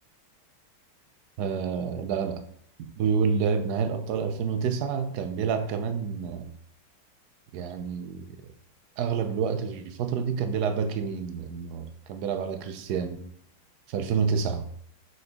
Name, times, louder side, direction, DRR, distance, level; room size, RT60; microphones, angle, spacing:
voice 1, 1.4-2.4 3.0-6.5 7.5-8.4 9.0-13.2 13.9-14.7, right 6 dB, 70° right, 8 dB, 1.0 m, -28 dB
5.2 x 4.0 x 4.6 m, 0.64 s
omnidirectional pair, 2.2 m